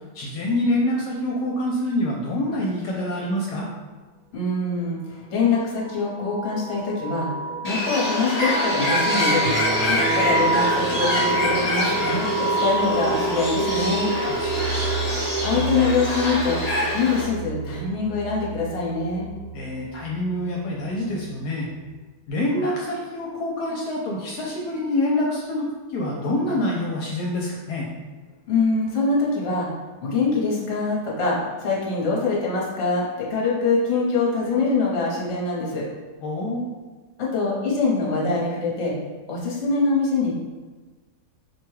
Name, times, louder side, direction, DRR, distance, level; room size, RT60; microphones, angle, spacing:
voice 1, 0.1-3.7 14.3-14.6 19.5-21.7 22.3-27.9 36.2-36.6, left 1 dB, 75° left, -2 dB, 1.1 m, -26 dB
voice 2, 4.3-7.3 7.6-9.5 9.7-14.1 15.4-16.6 16.9-19.3 28.5-29.7 30.0-35.9 37.2-38.9 39.3-40.3, left 4 dB, 50° left, -5 dB, 1.1 m, -24 dB
sound 1, 5.7-20.1, right 3 dB, 55° right, 1.3 m, -28 dB
Bird, 7.6-17.2, left 1 dB, 20° left, 1.1 m, -26 dB
sound 2, 9.4-13.0, left 1 dB, 75° right, 1.8 m, -34 dB
4.8 x 2.2 x 3.1 m, 1.3 s
omnidirectional pair, 1.8 m